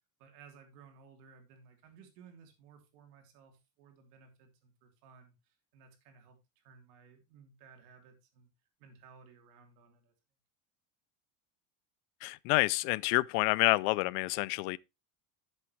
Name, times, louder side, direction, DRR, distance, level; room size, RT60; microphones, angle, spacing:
voice 1, 0.2-8.5 8.8-10.1, right 6 dB, 85° right, 3.3 m, -58 dB
voice 2, 12.2-14.8, left 23 dB, 80° left, 0.6 m, -28 dB
11.0 x 7.5 x 3.1 m
cardioid pair, 170°, 45 cm